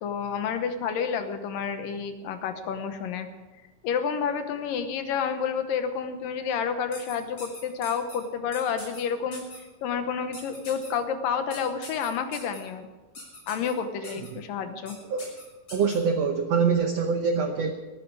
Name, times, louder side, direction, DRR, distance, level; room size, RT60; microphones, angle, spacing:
voice 1, 0.0-3.3 3.8-9.4 9.8-12.9 13.5-15.0, left 7 dB, 70° left, 8 dB, 2.5 m, -29 dB
sound 1, 6.9-8.2 8.5-9.0 9.3-9.6 10.3-10.9 11.5-12.6 13.1-13.7 14.0-14.3 14.9-15.0 15.2-16.0, left 2 dB, 30° left, 6.7 m, -42 dB
voice 2, 14.0-14.4 15.1-15.3 15.7-17.7, right 5 dB, 85° right, 5 dB, 1.4 m, -25 dB
19.5 x 14.5 x 4.7 m, 1.2 s
omnidirectional pair, 4.4 m